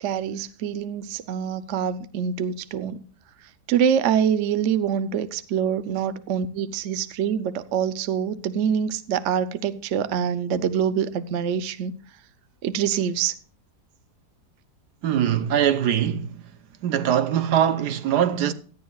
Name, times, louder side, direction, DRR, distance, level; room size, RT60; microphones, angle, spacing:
voice 1, 0.0-3.0 3.7-11.9 12.6-13.3, right 8 dB, 60° right, 0.8 m, -25 dB
voice 2, 15.0-16.4 16.8-18.5, right 9 dB, 75° right, 1.4 m, -22 dB
17.5 x 11.5 x 2.3 m
omnidirectional pair, 1.8 m